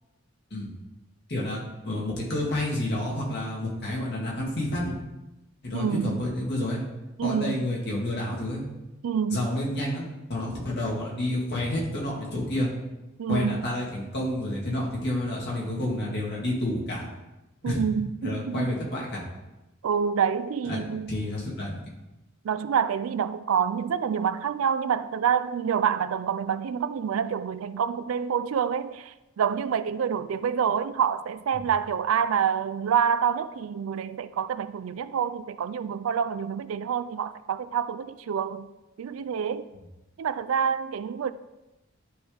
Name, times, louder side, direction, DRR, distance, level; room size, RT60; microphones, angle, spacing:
voice 1, 1.3-4.9 5.6-6.8 7.2-8.6 9.3-12.7 13.3-17.1 17.6-17.8 18.2-19.2 20.6-20.8 21.1-21.8 31.5-31.6, left 1 dB, 55° left, 2.1 m, -29 dB
voice 2, 5.7-6.2 7.2-7.6 9.0-9.5 13.2-13.7 17.6-18.8 19.8-21.2 22.4-38.7 39.0-39.7 40.2-41.3, right 7 dB, 85° right, 0.4 m, -27 dB
11.0 x 3.8 x 3.4 m
head